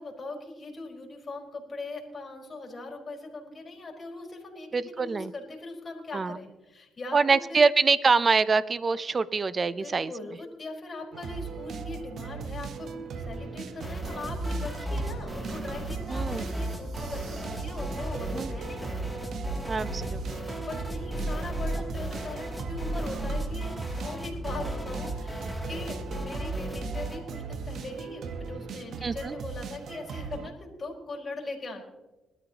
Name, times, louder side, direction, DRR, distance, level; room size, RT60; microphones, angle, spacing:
voice 1, 0.0-7.7 9.8-19.0 20.6-31.8, left 2 dB, 35° left, 0 dB, 4.4 m, -40 dB
voice 2, 4.7-5.3 6.1-6.4 7.1-10.1 16.1-16.4 18.3-18.5 19.7-20.2 29.0-29.3, right 4 dB, 35° right, 17 dB, 0.6 m, -25 dB
sound 1, 11.1-30.5, right 5 dB, 65° right, 1.0 m, -38 dB
sound 2, 13.8-27.2, equal, 10° right, 2.7 m, -35 dB
21.0 x 13.0 x 2.9 m, 1.1 s
cardioid pair, 90°, 0 cm